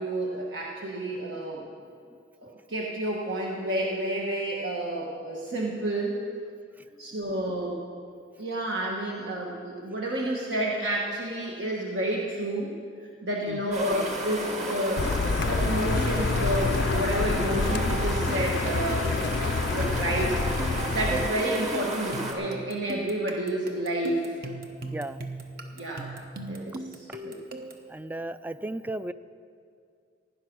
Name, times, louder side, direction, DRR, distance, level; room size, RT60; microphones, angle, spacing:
voice 1, 0.0-1.7 2.4-6.2 7.0-7.8 8.4-12.8 13.2-15.1 15.4-19.1 19.7-20.4 20.6-24.4 25.7-26.1 26.5-27.4, right 1 dB, 75° right, -2 dB, 1.4 m, -30 dB
sound 1, 13.7-22.3, right 1 dB, 40° right, 1.9 m, -33 dB
Car, 15.0-21.3, left 4 dB, 70° left, 0.4 m, -27 dB
sound 2, 15.6-27.9, right 2 dB, 55° right, 1.1 m, -39 dB
voice 2, 27.9-29.1, right 1 dB, 10° right, 13 dB, 0.3 m, -34 dB
16.0 x 9.9 x 6.1 m, 2.3 s
head